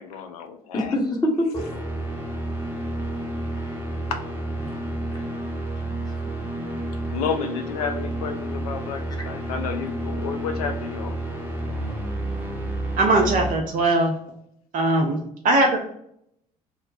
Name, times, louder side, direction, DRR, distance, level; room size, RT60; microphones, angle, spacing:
voice 1, 0.0-1.0 4.1-4.2 7.1-11.2, left 6 dB, 75° left, 6 dB, 0.4 m, -31 dB
voice 2, 0.7-1.8 3.5-3.8 4.6-4.9 5.2-6.8 9.2-9.3, left 1 dB, 20° left, -1 dB, 1.1 m, -29 dB
sound 1, 1.5-13.5, right 1 dB, 10° right, 0.9 m, -30 dB
voice 3, 13.0-14.1 14.7-15.2 15.4-15.8, right 2 dB, 45° right, 2 dB, 0.6 m, -20 dB
2.9 x 2.1 x 3.8 m, 0.70 s
figure-of-eight pair, 50°, 19 cm